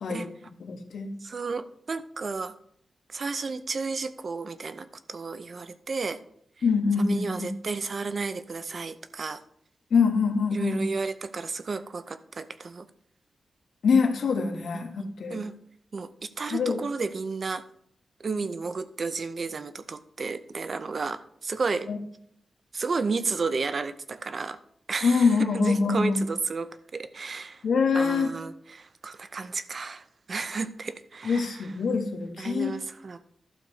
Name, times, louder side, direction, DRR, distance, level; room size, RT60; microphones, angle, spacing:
voice 1, 0.0-1.1 6.6-7.5 9.9-10.8 13.8-15.4 16.5-16.8 21.9-22.0 25.0-26.2 27.6-28.3 31.2-32.7, left 5 dB, 70° left, 5 dB, 1.4 m, -24 dB
voice 2, 1.2-2.5 3.1-6.2 7.0-9.4 10.5-12.9 14.7-15.6 15.9-17.6 18.2-21.9 22.7-24.6 24.9-27.6 27.9-31.7 32.4-33.2, right 4 dB, 45° right, 13 dB, 0.6 m, -32 dB
12.0 x 4.0 x 6.4 m, 0.67 s
wide cardioid pair, 135°, 0 cm